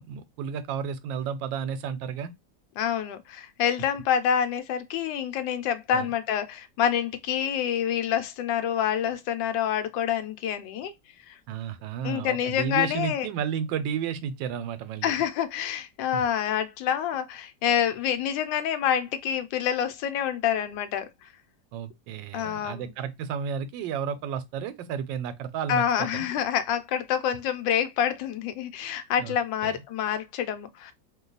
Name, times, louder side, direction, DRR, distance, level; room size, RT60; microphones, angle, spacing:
voice 1, 0.0-2.3 5.9-6.1 11.5-15.1 16.1-16.2 21.7-26.3 29.2-29.4 29.6-29.8, right 7 dB, 80° right, 1.3 m, -32 dB
voice 2, 2.8-10.9 11.3-11.4 12.0-13.3 15.0-21.1 22.3-22.9 25.7-30.9, left 9 dB, 80° left, 1.2 m, -27 dB
3.0 x 2.2 x 3.8 m
omnidirectional pair, 2.0 m